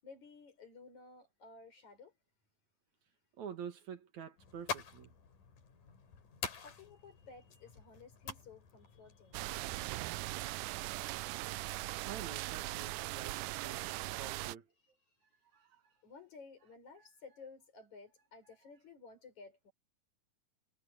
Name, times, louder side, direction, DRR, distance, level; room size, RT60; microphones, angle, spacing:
voice 1, 0.0-2.1 6.6-9.6 15.1-15.2 16.0-19.7, left 4 dB, 65° left, 7.4 m, -55 dB
voice 2, 3.4-5.1 12.0-14.7 15.5-15.9, right 8 dB, 65° right, 2.9 m, -48 dB
sound 1, 4.4-10.4, left 6 dB, 80° left, 4.7 m, -47 dB
sound 2, 9.3-14.6, right 20 dB, 85° right, 2.1 m, -40 dB
omnidirectional pair, 3.6 m